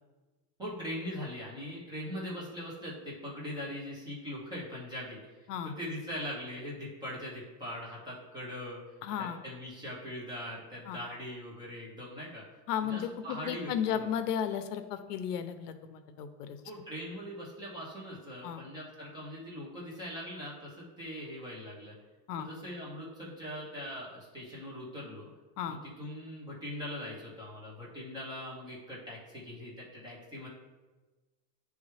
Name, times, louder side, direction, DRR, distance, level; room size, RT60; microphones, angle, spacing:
voice 1, 0.6-8.8 9.2-12.4 12.8-14.1 16.6-21.9 22.4-25.3 25.7-30.5, equal, 10° right, -6 dB, 1.1 m, -41 dB
voice 2, 9.0-9.4 10.9-11.0 12.7-16.6 18.4-18.6 22.3-22.5 25.6-25.8, left 8 dB, 75° left, 9 dB, 0.7 m, -34 dB
9.7 x 3.5 x 3.2 m, 1.2 s
supercardioid pair, 180°, 48 cm